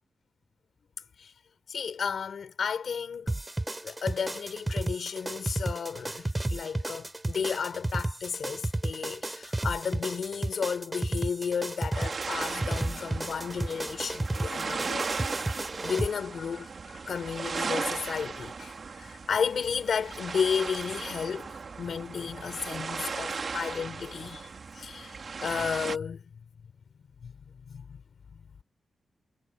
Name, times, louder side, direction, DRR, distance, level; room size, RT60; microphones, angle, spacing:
voice 1, 1.7-3.3 3.8-15.1 15.4-16.7 17.0-25.2 25.4-26.2 27.2-27.3 27.7-28.0 28.3-28.4, left 6 dB, 75° left, 5.0 m, -33 dB
sound 1, 3.3-16.1, right 2 dB, 20° right, 4.0 m, -32 dB
sound 2, 11.9-26.0, right 5 dB, 55° right, 2.5 m, -37 dB
wide cardioid pair, 100°, 0 cm